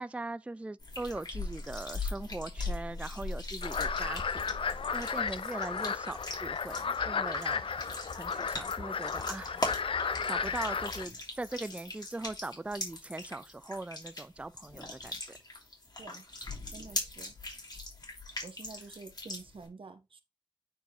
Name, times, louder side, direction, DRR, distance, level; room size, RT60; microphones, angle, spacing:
voice 1, 0.0-9.6 10.0-15.4, right 2 dB, 15° right, 0.3 m, -41 dB
sound 1, 0.8-19.7, left 2 dB, 50° left, 3.0 m, -40 dB
sound 2, 3.6-11.0, left 5 dB, 80° left, 0.5 m, -34 dB
voice 2, 16.7-17.3 18.4-20.2, right 4 dB, 80° right, 1.0 m, -48 dB
9.1 x 4.5 x 3.0 m
wide cardioid pair, 90°, 9 cm